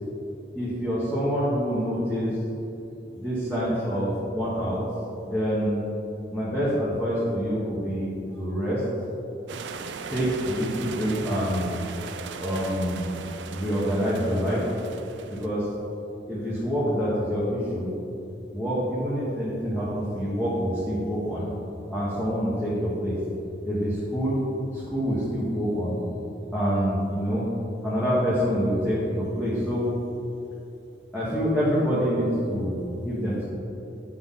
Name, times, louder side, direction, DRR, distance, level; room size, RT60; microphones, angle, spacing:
voice 1, 0.5-2.3 3.1-4.8 5.2-5.9 6.3-8.8 10.0-11.9 12.4-13.1 13.5-14.6 15.3-15.7 16.3-17.9 18.5-21.5 21.9-23.1 23.6-24.4 24.7-26.0 26.5-27.5 27.8-29.9 31.1-33.5, equal, 5° left, -11 dB, 1.4 m, -26 dB
sound 1, 9.5-15.5, right 5 dB, 80° right, 0.4 m, -38 dB
8.8 x 6.1 x 3.8 m, 2.9 s
head